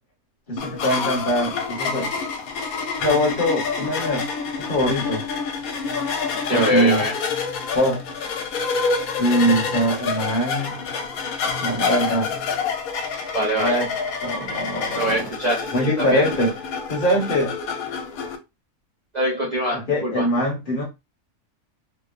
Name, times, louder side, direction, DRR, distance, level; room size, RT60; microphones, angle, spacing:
voice 1, 0.5-2.1 3.0-4.3 4.6-5.3 6.5-7.1 7.7-8.0 9.2-10.7 11.6-12.3 13.6-13.9 14.2-15.3 15.7-16.5 16.9-17.5 19.7-20.9, equal, 45° left, 0.8 m, -22 dB
sound 1, 0.6-18.4, left 5 dB, 85° left, 1.0 m, -27 dB
voice 2, 6.5-7.2 13.3-13.9 15.0-16.3 19.1-20.3, equal, 50° right, 0.5 m, -24 dB
2.8 x 2.0 x 2.3 m
omnidirectional pair, 1.5 m